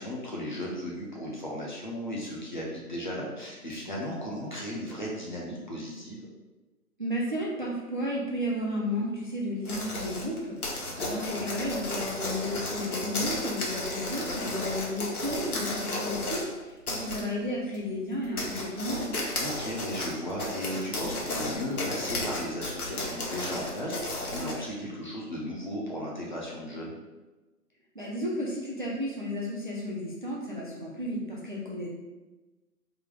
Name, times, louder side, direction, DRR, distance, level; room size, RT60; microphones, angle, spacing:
voice 1, 0.0-6.2 10.8-11.2 19.4-27.0, equal, 30° left, -4 dB, 0.5 m, -35 dB
voice 2, 7.0-19.1 27.9-31.9, equal, 35° right, -4 dB, 0.4 m, -33 dB
sound 1, 9.6-16.5 16.9-17.2 17.7-17.8 18.2-24.6, left 2 dB, 65° left, 1.1 m, -33 dB
3.3 x 2.1 x 3.8 m, 1.2 s
figure-of-eight pair, 140°, 47 cm